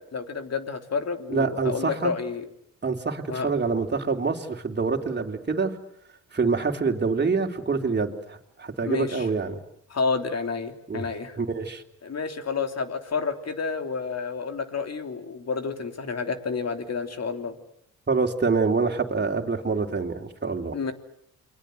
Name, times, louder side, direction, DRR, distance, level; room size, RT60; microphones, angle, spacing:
voice 1, 0.1-2.5 3.3-3.5 8.8-9.3 9.9-11.4 12.0-17.6 20.7-20.9, left 5 dB, 50° left, 8 dB, 3.4 m, -30 dB
voice 2, 1.3-2.1 2.8-5.7 6.3-9.6 10.9-11.1 11.4-11.8 18.1-20.8, right 4 dB, 30° right, 3 dB, 3.7 m, -26 dB
29.0 x 22.5 x 8.0 m, 0.74 s
cardioid pair, 65°, 32 cm